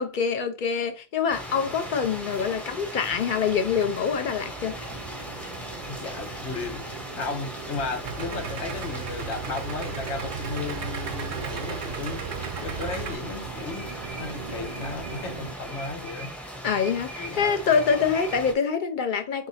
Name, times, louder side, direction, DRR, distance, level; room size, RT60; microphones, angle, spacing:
voice 1, 0.0-4.8 16.6-19.5, left 6 dB, 55° left, 0.6 m, -25 dB
sound 1, 1.3-18.5, equal, ahead, 0.6 m, -39 dB
sound 2, 4.7-15.6, right 5 dB, 55° right, 0.4 m, -40 dB
voice 2, 5.8-6.8 7.1-12.3 12.6-16.4 17.2-17.7, left 4 dB, 80° left, 1.2 m, -35 dB
Idling, 8.0-13.1, right 6 dB, 75° right, 0.9 m, -35 dB
3.8 x 2.8 x 4.1 m
omnidirectional pair, 1.2 m